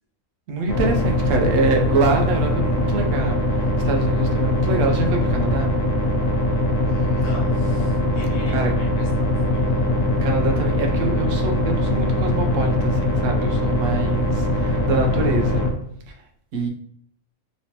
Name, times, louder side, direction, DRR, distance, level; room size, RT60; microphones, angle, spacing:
voice 1, 0.5-5.7 8.5-8.7 10.2-15.7 16.5-16.7, right 3 dB, 75° right, 3 dB, 1.0 m, -25 dB
sound 1, 0.7-15.7, left 1 dB, 85° left, 1.1 m, -21 dB
voice 2, 6.8-9.6, left 3 dB, 65° left, -2 dB, 1.2 m, -41 dB
3.2 x 3.0 x 2.8 m, 0.68 s
omnidirectional pair, 1.3 m